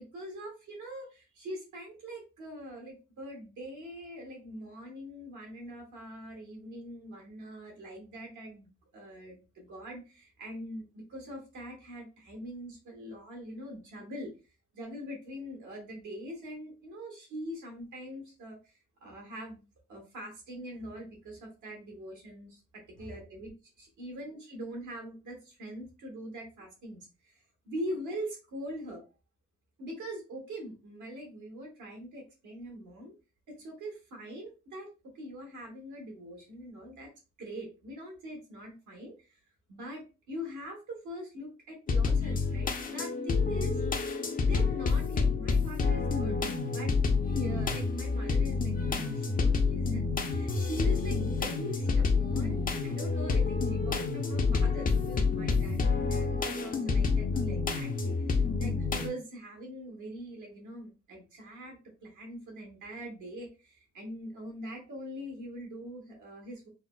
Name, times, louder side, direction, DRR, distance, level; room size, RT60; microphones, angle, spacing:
voice 1, 0.0-14.3 14.7-18.6 19.0-19.6 19.9-22.6 22.9-23.5 23.8-29.0 29.8-33.1 33.5-34.9 35.1-37.1 37.4-39.4 39.7-43.8 44.4-46.4 46.7-46.9 47.3-66.7, equal, 75° right, 0 dB, 1.5 m, -42 dB
sound 1, 41.9-59.1, left 4 dB, 30° left, 0.5 m, -28 dB
3.9 x 2.0 x 2.2 m, 0.31 s
cardioid pair, 90°, 30 cm